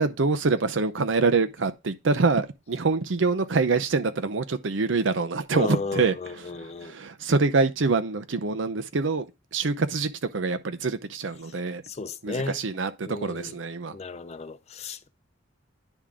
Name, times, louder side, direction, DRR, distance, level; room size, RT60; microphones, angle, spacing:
voice 1, 0.0-9.2 9.5-11.8 12.2-13.9, right 4 dB, 75° right, 0.7 m, -25 dB
voice 2, 5.5-6.9 11.5-12.6 13.1-13.6 13.9-15.1, left 3 dB, 35° left, 0.4 m, -34 dB
10.0 x 3.6 x 3.6 m
head